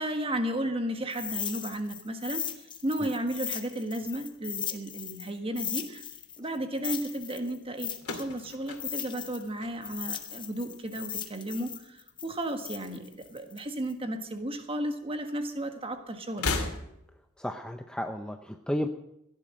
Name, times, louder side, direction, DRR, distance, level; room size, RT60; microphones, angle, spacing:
voice 1, 0.0-6.0 6.4-16.8, right 1 dB, 25° right, 6 dB, 1.5 m, -34 dB
sound 1, 1.1-5.3 5.6-9.5 9.8-13.9, left 8 dB, 20° left, 1.1 m, -37 dB
sound 2, 8.0-10.3 10.6-11.2 12.3-13.3 13.5-13.7 14.8-14.9 16.3-17.3, left 3 dB, 80° left, 2.4 m, -36 dB
voice 2, 17.4-18.9, equal, 5° left, 6 dB, 0.6 m, -33 dB
16.0 x 11.0 x 6.5 m, 0.82 s
head